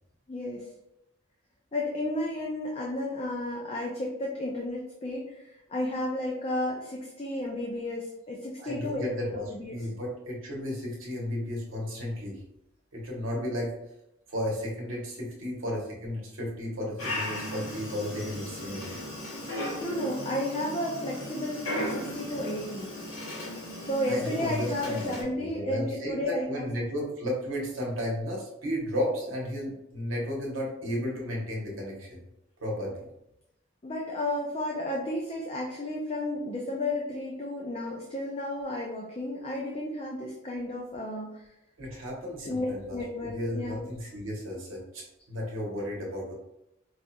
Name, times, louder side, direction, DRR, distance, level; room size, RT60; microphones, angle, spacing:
voice 1, 0.3-0.7 1.7-9.0 9.3-9.9 19.8-22.9 23.8-26.7 33.8-41.4 42.4-43.8, left 1 dB, 30° left, -2 dB, 0.4 m, -32 dB
voice 2, 8.6-9.5 9.7-12.4 12.9-13.7 14.3-19.0 24.1-32.2 32.6-33.1 41.8-46.3, equal, 80° right, -2 dB, 1.0 m, -33 dB
Dog, 17.0-25.2, left 1 dB, 75° left, 1.4 m, -36 dB
4.8 x 2.7 x 2.2 m, 0.85 s
head